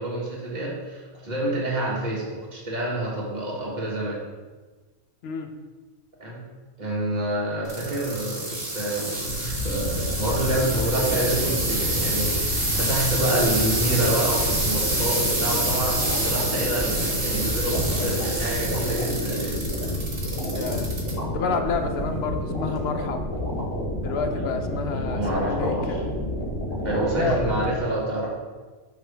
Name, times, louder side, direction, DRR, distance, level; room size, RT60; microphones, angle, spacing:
voice 1, 0.0-2.2 2.5-4.2 6.2-6.4 6.8-19.5 24.9-25.8 26.8-28.3, right 1 dB, 35° right, -4 dB, 1.7 m, -27 dB
sound 1, 7.6-21.1 21.6-22.1 22.8-22.9, right 2 dB, 85° right, 1.9 m, -27 dB
sound 2, 9.2-27.7, left 1 dB, 80° left, 2.1 m, -29 dB
voice 2, 20.5-20.9 21.3-23.2 24.0-26.0 27.1-27.5, left 4 dB, 60° left, 6 dB, 0.8 m, -29 dB
6.6 x 5.9 x 3.4 m, 1.3 s
omnidirectional pair, 1.3 m